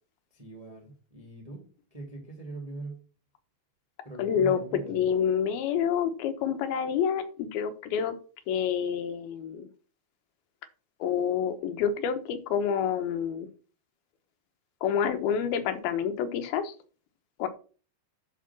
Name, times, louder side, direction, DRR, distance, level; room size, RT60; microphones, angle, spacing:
voice 1, 0.3-1.6 1.9-3.0 4.0-5.1, right 2 dB, 15° right, -1 dB, 1.7 m, -41 dB
voice 2, 4.2-8.1 8.5-9.6 11.0-13.5 14.8-16.7 17.4-17.5, left 8 dB, 85° left, 9 dB, 3.0 m, -28 dB
11.0 x 4.7 x 6.0 m, 0.38 s
omnidirectional pair, 4.2 m